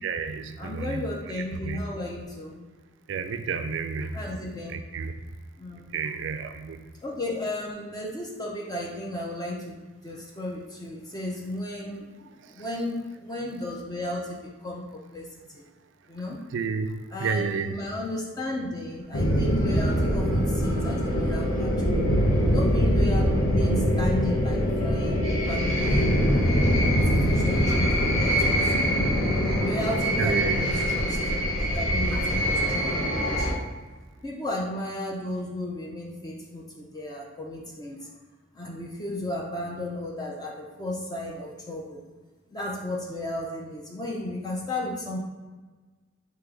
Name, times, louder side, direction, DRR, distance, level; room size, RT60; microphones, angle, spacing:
voice 1, 0.0-1.0 1.3-1.8 3.1-4.2 4.7-5.1 5.9-6.8 12.4-12.6 16.5-17.8 30.2-30.9 32.1-32.3, right 5 dB, 60° right, 9 dB, 0.3 m, -31 dB
voice 2, 0.6-2.6 4.1-4.8 5.6-5.9 7.0-15.3 15.5-15.6 16.1-16.4 17.1-22.0 22.5-26.5 26.9-29.1 29.6-31.2 31.7-33.6 34.2-38.1 38.5-42.0 42.5-45.2, left 1 dB, 20° left, -2 dB, 0.4 m, -34 dB
sound 1, 19.1-33.5, equal, 70° left, 0.9 m, -23 dB
3.8 x 2.8 x 4.7 m, 1.3 s
head